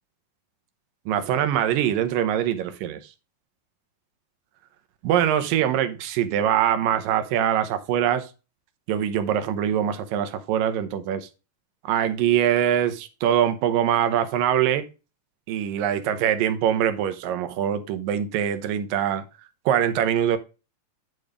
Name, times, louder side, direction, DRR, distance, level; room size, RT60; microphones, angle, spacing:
voice 1, 1.1-3.0 5.0-8.3 8.9-11.3 11.8-14.9 15.5-19.2 19.7-20.4, right 10 dB, 80° right, 2.6 m, -23 dB
11.0 x 4.0 x 5.0 m
omnidirectional pair, 4.0 m